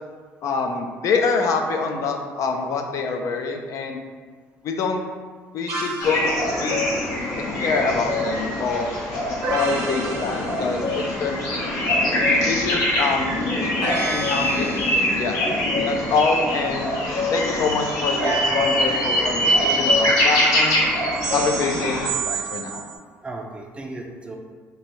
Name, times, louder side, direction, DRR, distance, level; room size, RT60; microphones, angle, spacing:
voice 1, 0.4-4.0 4.6-5.0 5.5-6.3 6.6-7.0 7.6-8.9 9.4-11.7 12.4-15.4 15.8-16.9 17.3-20.8 21.3-22.8, left 4 dB, 60° left, 3 dB, 0.4 m, -26 dB
sound 1, 5.7-6.2 9.4-11.1 13.8-15.2 18.2-19.7 21.2-22.9, right 4 dB, 85° right, 0.7 m, -30 dB
sound 2, 6.0-22.1, left 1 dB, 80° left, 1.1 m, -23 dB
voice 2, 15.2-15.6 23.2-24.4, right 2 dB, 20° right, 1 dB, 0.5 m, -36 dB
3.0 x 2.6 x 4.4 m, 1.5 s
cardioid pair, 105°, 6 cm